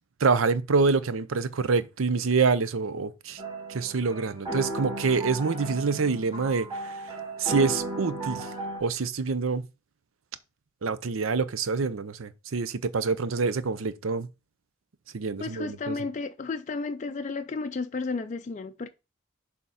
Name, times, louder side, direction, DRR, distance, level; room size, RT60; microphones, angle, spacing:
voice 1, 0.2-3.4 3.7-7.0 7.4-8.5 8.8-9.6 10.8-14.3 15.1-16.0, right 4 dB, 75° right, 0.6 m, -26 dB
sound 1, 3.4-8.8, right 2 dB, 20° right, 1.9 m, -35 dB
voice 2, 15.4-18.9, left 4 dB, 35° left, 0.4 m, -33 dB
6.8 x 3.6 x 5.6 m
head